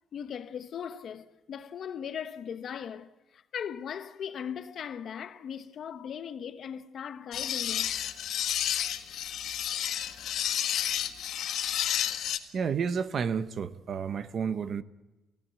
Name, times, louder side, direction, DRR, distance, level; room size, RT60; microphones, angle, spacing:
voice 1, 0.1-8.0, left 8 dB, 45° left, 1.1 m, -39 dB
sound 1, 7.3-12.4, left 10 dB, 60° left, 1.6 m, -31 dB
voice 2, 12.5-14.8, right 6 dB, 40° right, 0.9 m, -31 dB
29.0 x 16.0 x 8.3 m
cardioid pair, 175°, 0 cm